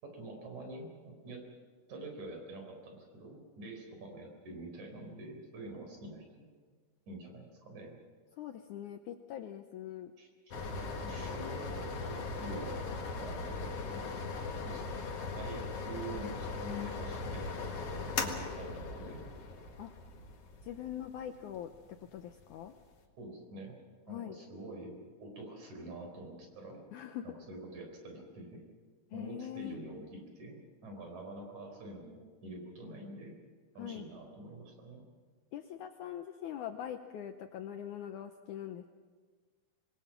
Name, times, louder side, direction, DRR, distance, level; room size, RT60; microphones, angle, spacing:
voice 1, 0.0-1.4 1.9-6.5 7.1-8.0 10.2-10.6 11.0-12.9 13.2-14.0 14.6-15.0 15.3-19.2 23.2-23.8 24.1-26.8 27.2-28.6 29.1-33.4 33.8-35.0, right 1 dB, 55° right, 3 dB, 5.5 m, -46 dB
voice 2, 8.4-10.1 19.8-19.9 20.6-21.7 22.1-22.7 24.1-24.4 26.9-27.2 29.1-29.8 33.8-34.0 35.5-38.9, left 10 dB, 75° left, 6 dB, 1.9 m, -42 dB
sound 1, 10.5-22.9, left 4 dB, 50° left, 2.3 m, -39 dB
26.5 x 20.5 x 5.9 m, 1.5 s
omnidirectional pair, 4.3 m